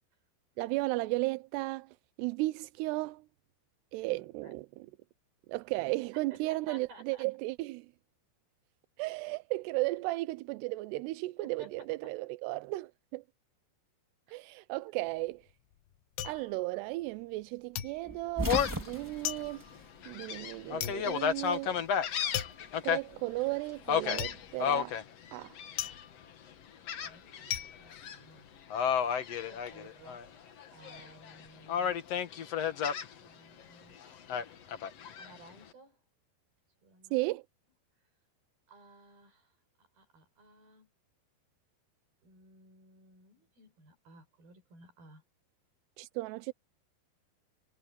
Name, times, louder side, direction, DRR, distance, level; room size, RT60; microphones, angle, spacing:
voice 1, 0.6-3.3 3.9-4.9 5.5-7.9 9.0-13.2 14.3-15.4 16.2-19.6 20.1-21.8 22.8-25.0 25.3-25.6 37.1-37.4 46.0-46.5, right 21 dB, 80° right, 2.6 m, -35 dB
voice 2, 4.0-4.5 6.3-7.3 11.4-12.1 14.3-14.4 14.8-14.9 27.0-28.5 29.5-30.2 30.7-32.0 32.8-32.9 33.2-34.3 35.2-36.0 36.8-37.3 38.7-39.5 39.9-40.9 42.2-45.2, right 3 dB, 60° right, 8.6 m, -56 dB
sound 1, 15.1-17.5 17.8-28.9 29.2-29.8, left 13 dB, 75° left, 2.9 m, -41 dB
sound 2, 18.0-20.6 20.9-21.9 23.1-24.6, right 1 dB, 20° right, 0.5 m, -38 dB
Gull seagull, 18.5-18.9 19.4-19.5 20.0-23.0 23.9-25.0 25.6-26.0 26.9-27.6 27.9-28.2 28.7-30.3 30.6-31.3 31.7-33.1 34.3-35.3, left 8 dB, 60° left, 1.7 m, -32 dB
omnidirectional pair, 5.0 m